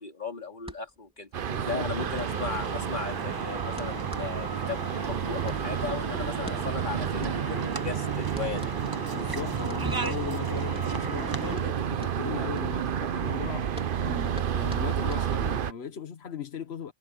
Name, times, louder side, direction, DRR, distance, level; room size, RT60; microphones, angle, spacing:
voice 1, 0.0-8.7, left 5 dB, 50° left, 2.6 m, -37 dB
sound 1, 0.6-15.7, equal, 5° right, 3.6 m, -47 dB
sound 2, 1.3-15.7, right 9 dB, 60° right, 0.9 m, -31 dB
voice 2, 1.5-1.9 9.1-13.7 14.0-16.9, left 7 dB, 85° left, 1.3 m, -38 dB
sound 3, 2.0-11.6, right 3 dB, 25° right, 0.8 m, -36 dB
omnidirectional pair, 1.0 m